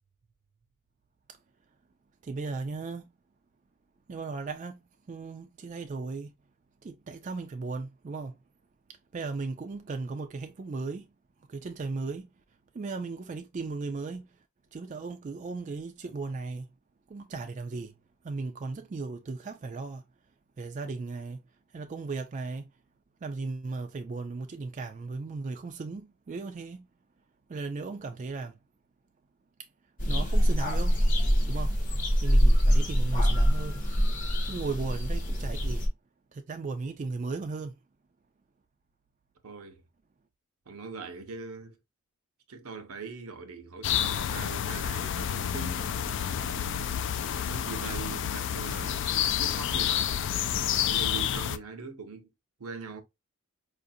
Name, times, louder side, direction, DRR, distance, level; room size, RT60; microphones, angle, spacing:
voice 1, 2.2-3.0 4.1-4.8 5.1-6.3 6.8-8.3 9.1-11.0 11.5-12.3 12.8-14.2 14.7-16.7 17.1-17.9 18.2-20.0 20.6-21.4 21.7-22.7 23.2-26.8 27.5-28.5 30.1-31.0 31.5-31.8 32.2-33.8 34.4-35.8 36.3-37.7, right 3 dB, 35° right, 0.3 m, -36 dB
sound 1, 30.0-35.9, equal, 35° left, 0.9 m, -24 dB
voice 2, 39.4-39.8 40.7-41.8 42.5-46.6 47.5-49.1 49.4-50.1 50.9-52.3 52.6-53.0, right 4 dB, 80° right, 0.8 m, -42 dB
sound 2, 43.8-51.6, left 9 dB, 55° left, 0.3 m, -29 dB
4.9 x 2.6 x 2.6 m
head